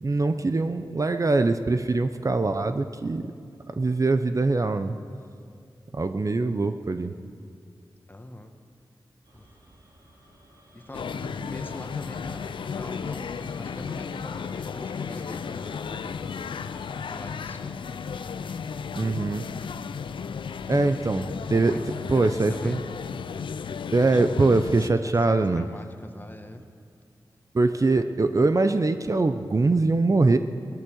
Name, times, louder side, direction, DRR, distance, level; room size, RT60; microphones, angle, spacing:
voice 1, 0.0-3.3 3.8-5.0 5.9-7.1 19.0-19.5 20.7-21.7 22.1-22.8 23.9-25.7 27.5-30.4, right 3 dB, 40° right, 9 dB, 0.7 m, -23 dB
voice 2, 2.6-3.0 8.1-8.5 9.3-9.5 10.7-16.4 17.1-17.8 20.6-20.9 21.5-22.8 25.0-26.6, left 1 dB, 25° left, 5 dB, 1.4 m, -43 dB
sound 1, 9.2-23.1, right 1 dB, 70° right, 3.7 m, -54 dB
sound 2, 10.9-24.9, left 6 dB, 85° left, 0.4 m, -34 dB
18.0 x 12.5 x 6.4 m, 2.3 s
cardioid pair, 50°, 8 cm